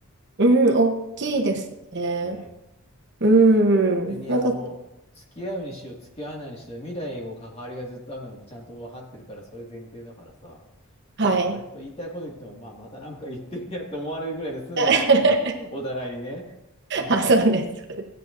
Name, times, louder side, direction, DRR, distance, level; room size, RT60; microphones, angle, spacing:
voice 1, 0.4-1.6 1.9-2.4 3.2-4.6 11.2-11.6 14.8-15.5 16.9-18.1, right 2 dB, 50° right, 3 dB, 1.0 m, -20 dB
voice 2, 2.2-2.5 4.0-4.7 5.1-10.6 11.2-16.4 16.9-17.5, equal, 25° left, -2 dB, 2.0 m, -36 dB
16.0 x 9.0 x 2.6 m, 0.87 s
head